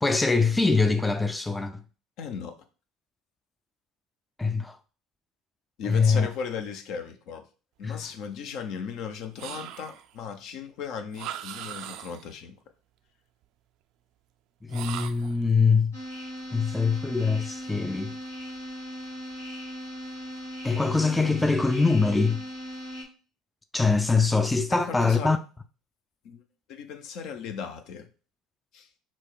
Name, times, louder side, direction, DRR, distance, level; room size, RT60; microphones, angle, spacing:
voice 1, 0.0-1.8 4.4-4.8 5.8-6.3 7.8-8.1 14.7-16.0 16.5-18.2 20.6-22.4 23.7-25.4, left 4 dB, 10° left, 0.4 m, -23 dB
voice 2, 2.2-2.6 5.8-7.4 7.8-12.5 24.7-25.3 26.2-26.4 26.7-28.1 28.7-28.9, left 6 dB, 60° left, 0.7 m, -36 dB
sound 1, 9.4-10.2 11.1-12.4 14.7-15.4, right 11 dB, 60° right, 0.4 m, -39 dB
sound 2, 15.9-23.0, equal, 90° left, 1.7 m, -38 dB
4.3 x 2.3 x 4.5 m
hypercardioid pair, 65°, 0 cm